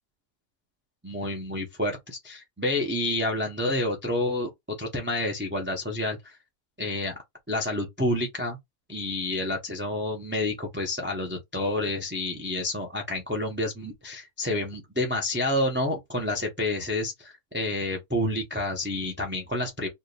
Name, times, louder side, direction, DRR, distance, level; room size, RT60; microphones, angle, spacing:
voice 1, 1.0-4.5 4.8-6.4 6.8-7.2 7.5-8.6 8.9-19.9, left 1 dB, 10° right, 0.7 m, -29 dB
4.5 x 2.5 x 3.3 m
omnidirectional pair, 1.8 m